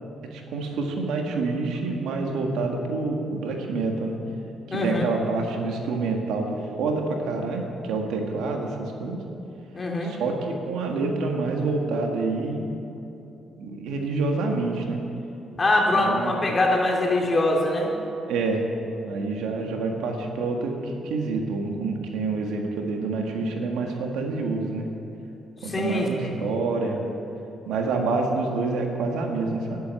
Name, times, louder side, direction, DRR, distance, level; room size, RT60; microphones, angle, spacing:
voice 1, 0.3-4.2 4.7-6.5 6.8-9.2 10.0-12.6 13.6-15.0 15.9-16.3 18.3-18.6 19.0-24.9 25.6-27.0 27.7-29.8, right 3 dB, 85° right, 2 dB, 1.7 m, -27 dB
voice 2, 4.7-5.0 9.7-10.1 15.6-17.9 25.6-26.3, left 2 dB, 30° left, 0 dB, 2.7 m, -23 dB
11.0 x 10.5 x 8.2 m, 2.8 s
cardioid pair, 90°, 0 cm